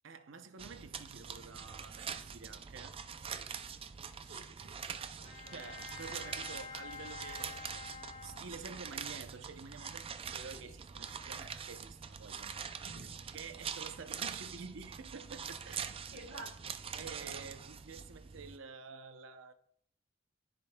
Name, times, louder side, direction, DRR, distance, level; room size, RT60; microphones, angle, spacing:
voice 1, 0.0-3.0 5.5-7.9 8.2-12.6 13.3-16.0 17.0-19.5, right 5 dB, 70° right, 0.7 m, -49 dB
sound 1, 0.6-18.6, right 7 dB, 30° right, 0.4 m, -44 dB
voice 2, 4.2-4.7 5.1-5.5 10.5-10.7 12.4-12.5 12.8-13.2 16.1-16.5, right 2 dB, 85° right, 1.6 m, -51 dB
Bowed string instrument, 5.2-8.9, left 5 dB, 35° left, 1.4 m, -48 dB
14.0 x 5.2 x 2.2 m
head